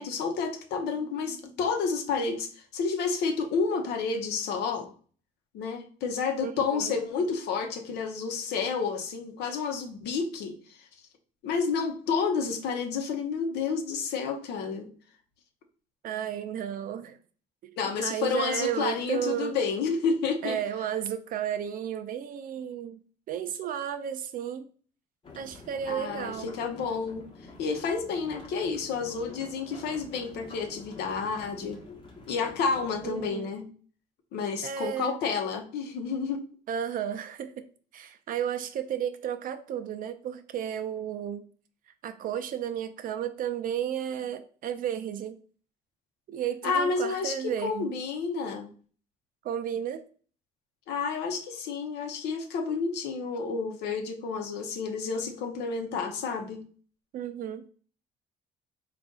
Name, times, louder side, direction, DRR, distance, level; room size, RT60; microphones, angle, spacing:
voice 1, 0.0-4.9 5.5-10.9 11.4-14.9 17.8-20.6 25.9-27.2 27.6-31.8 32.3-33.7 34.3-36.4 46.6-47.3 47.6-48.7 50.9-56.6, left 5 dB, 80° left, 4 dB, 0.9 m, -30 dB
voice 2, 6.4-6.9 16.0-17.2 17.6-17.8 18.0-19.6 20.4-23.0 23.3-24.7 25.3-26.5 33.0-33.5 34.6-35.2 36.7-37.7 37.9-41.4 42.0-45.4 46.3-48.0 49.4-50.0 57.1-57.7, right 9 dB, 55° right, 9 dB, 0.5 m, -33 dB
sound 1, 25.2-33.3, left 3 dB, 30° left, 1.0 m, -48 dB
3.9 x 2.5 x 3.7 m, 0.43 s
cardioid pair, 110°, 17 cm